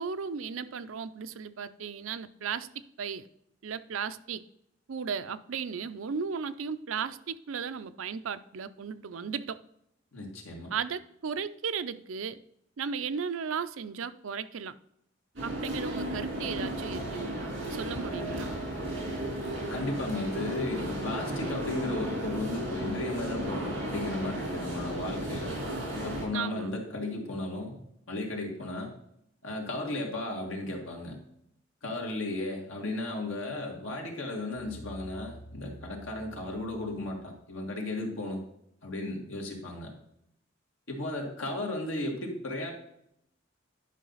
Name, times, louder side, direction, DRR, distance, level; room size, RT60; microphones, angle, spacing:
voice 1, 0.0-2.7 3.0-3.3 3.6-4.4 4.9-9.6 10.7-12.4 12.8-14.7 15.4-18.5 26.3-26.7, right 6 dB, 90° right, 0.5 m, -35 dB
voice 2, 10.1-10.7 19.7-25.5 25.9-27.8 28.1-28.9 29.4-31.2 31.8-38.4 38.8-39.9 40.9-42.7, left 2 dB, 90° left, 2.2 m, -35 dB
sound 1, 15.4-26.2, right 1 dB, 65° right, 3.9 m, -34 dB
sound 2, 34.6-37.7, right 1 dB, 50° left, 1.1 m, -49 dB
10.5 x 5.6 x 4.0 m
head